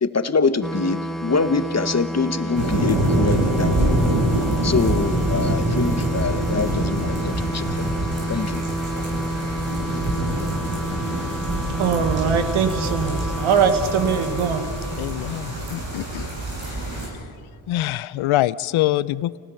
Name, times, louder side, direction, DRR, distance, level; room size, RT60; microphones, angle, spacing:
voice 1, 0.0-3.9 4.6-8.6, left 4 dB, 35° left, 11 dB, 1.3 m, -24 dB
sound 1, 0.6-16.0, right 1 dB, ahead, 1.3 m, -30 dB
sound 2, 2.5-17.1, right 1 dB, 70° right, 7.8 m, -25 dB
voice 2, 11.8-14.7 15.6-15.7, right 6 dB, 85° right, 8 dB, 1.6 m, -21 dB
voice 3, 15.0-16.3 16.7-17.0 17.7-19.4, left 15 dB, 80° left, 19 dB, 0.6 m, -25 dB
29.0 x 18.5 x 5.7 m, 2.3 s
supercardioid pair, 50°, 47 cm